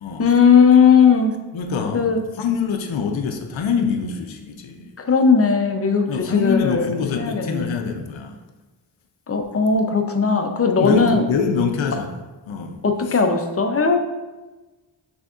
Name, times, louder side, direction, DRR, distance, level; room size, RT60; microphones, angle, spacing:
voice 1, 0.2-1.4 1.9-2.2 5.0-6.9 7.2-7.7 9.3-11.2 12.8-14.0, left 5 dB, 35° left, 5 dB, 0.5 m, -17 dB
voice 2, 1.5-4.9 6.1-8.4 10.8-12.1 12.5-12.8 13.1-13.2, left 6 dB, 80° left, 3 dB, 0.5 m, -25 dB
6.2 x 3.4 x 2.4 m, 1.2 s
wide cardioid pair, 105°, 46 cm